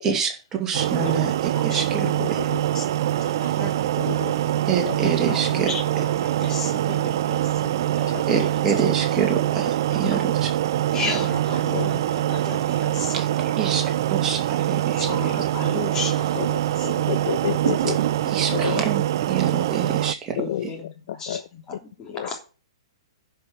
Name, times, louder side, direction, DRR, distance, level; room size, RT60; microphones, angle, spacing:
voice 1, 0.0-1.3 1.6-2.4 4.7-5.7 8.3-10.2 13.1-13.2 13.6-15.4 18.3-20.4, right 7 dB, 20° right, 3 dB, 2.4 m, -26 dB
sound 1, 0.7-20.1, right 12 dB, 45° right, 0.4 m, -24 dB
voice 2, 1.5-2.4 2.7-3.9 4.1-4.4 5.3-8.5 9.9-10.2 10.9-13.2 13.4-13.6 15.0-17.4 20.3-22.4, left 4 dB, 20° left, 2 dB, 3.2 m, -35 dB
voice 3, 2.2-2.6 3.2-3.6 4.0-4.3 4.8-5.1 8.1-8.2 11.7-11.9 15.0-15.1 16.3-16.5 16.8-18.0 18.5-18.9 20.4-20.7 21.3-21.4 21.7-21.8 22.1-22.3, left 11 dB, 45° left, 13 dB, 0.6 m, -30 dB
10.5 x 5.8 x 7.4 m, 0.35 s
figure-of-eight pair, 115°, 3 cm